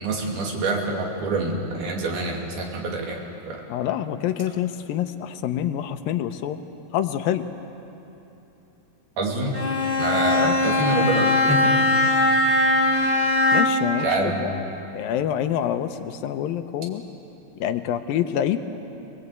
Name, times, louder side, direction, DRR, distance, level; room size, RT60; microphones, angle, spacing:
voice 1, 0.0-3.2 3.5-3.6 9.2-9.6 10.0-11.7 14.0-14.4, right 2 dB, 80° right, 0 dB, 4.6 m, -26 dB
voice 2, 3.7-6.6 6.9-7.5 10.4-10.6 13.5-14.5 14.9-17.0 17.6-18.6, left 10 dB, 75° left, 9 dB, 2.5 m, -26 dB
Bowed string instrument, 9.5-14.0, left 2 dB, 60° right, 0.4 m, -20 dB
23.5 x 22.5 x 8.3 m, 2.9 s
omnidirectional pair, 4.3 m